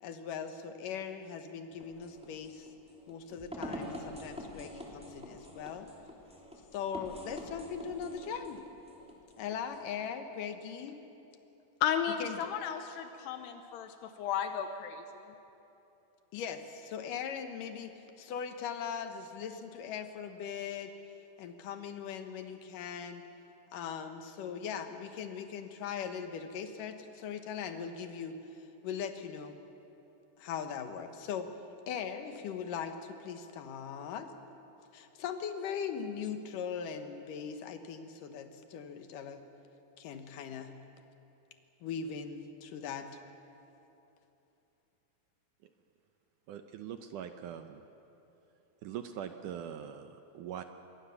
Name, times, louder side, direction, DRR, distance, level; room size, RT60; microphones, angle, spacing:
voice 1, 0.0-2.7 3.1-5.9 6.7-8.6 9.4-11.0 12.2-12.5 16.3-20.9 21.4-23.2 23.7-28.4 28.8-29.6 30.4-31.5 31.9-34.3 34.9-39.4 40.0-40.7 41.8-43.1, left 7 dB, 65° left, 2.6 m, -40 dB
sound 1, 1.7-9.9, equal, ahead, 2.7 m, -46 dB
voice 2, 11.8-15.3, left 8 dB, 80° left, 3.0 m, -34 dB
voice 3, 46.5-47.8 48.8-50.6, right 9 dB, 80° right, 1.9 m, -42 dB
26.0 x 23.0 x 7.1 m
omnidirectional pair, 4.7 m